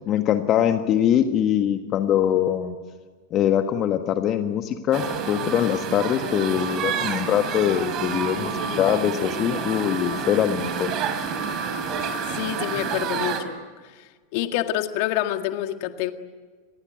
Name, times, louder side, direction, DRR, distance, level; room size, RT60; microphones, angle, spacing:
voice 1, 0.1-2.7 3.3-10.9, left 10 dB, 40° left, 7 dB, 1.5 m, -23 dB
sound 1, 4.9-13.4, right 6 dB, 40° right, 4.0 m, -29 dB
voice 2, 8.4-8.9 12.3-13.5 13.8-16.1, left 13 dB, 55° left, 8 dB, 1.8 m, -28 dB
27.0 x 20.5 x 9.3 m, 1.5 s
hypercardioid pair, 95°, 0 cm